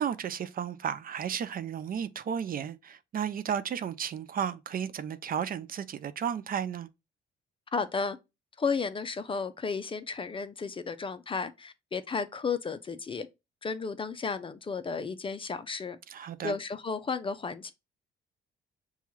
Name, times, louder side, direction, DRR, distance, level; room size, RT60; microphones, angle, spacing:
voice 1, 0.0-6.9 16.1-16.6, right 8 dB, 45° right, 0.4 m, -33 dB
voice 2, 7.7-8.2 8.6-13.3 13.6-16.0 16.4-17.7, left 5 dB, 25° left, 0.4 m, -33 dB
5.5 x 2.3 x 3.0 m
cardioid pair, 90°, 20 cm